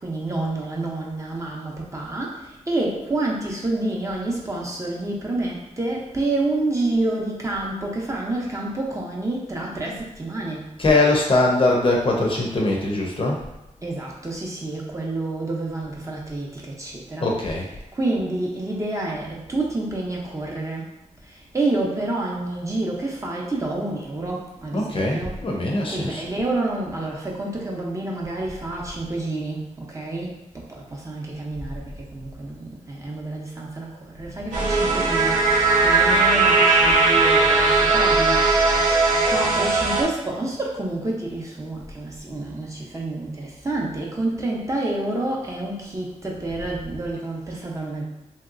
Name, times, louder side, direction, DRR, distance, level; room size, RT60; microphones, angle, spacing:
voice 1, 0.0-10.7 13.8-17.3 17.9-20.9 21.5-25.4 25.9-30.4 30.7-31.8 32.1-33.9 34.2-38.4 39.2-48.0, right 2 dB, 25° right, -3 dB, 0.6 m, -28 dB
voice 2, 10.8-13.4 17.2-17.7 24.7-26.2, left 2 dB, 45° left, -1 dB, 0.6 m, -21 dB
sound 1, 34.5-40.0, right 3 dB, 80° right, 0.7 m, -18 dB
3.1 x 2.8 x 2.5 m, 0.96 s
wide cardioid pair, 105°, 13 cm